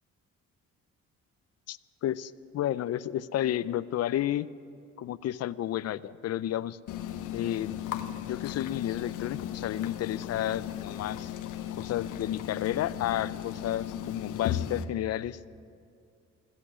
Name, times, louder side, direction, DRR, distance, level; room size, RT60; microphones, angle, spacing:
voice 1, 1.7-4.5 5.0-6.8 7.3-7.8 8.2-11.3 11.8-15.4, left 12 dB, 55° left, 17 dB, 0.5 m, -31 dB
sound 1, 6.9-14.8, left 11 dB, 80° left, 0.8 m, -36 dB
14.5 x 8.2 x 9.9 m, 2.3 s
cardioid pair, 90°, 30 cm